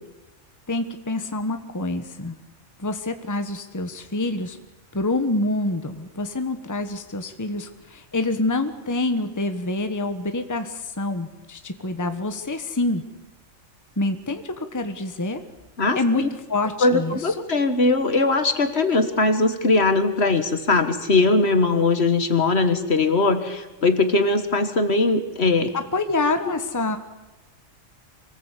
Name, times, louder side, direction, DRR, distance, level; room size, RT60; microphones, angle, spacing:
voice 1, 0.7-2.3 2.8-4.6 4.9-13.0 14.0-15.4 16.0-16.2 16.5-17.3 25.7-27.0, left 2 dB, 15° left, 8 dB, 1.2 m, -26 dB
voice 2, 15.8-16.3 16.8-25.7, left 3 dB, 55° left, 8 dB, 1.8 m, -20 dB
25.5 x 19.0 x 8.3 m, 1.1 s
omnidirectional pair, 1.3 m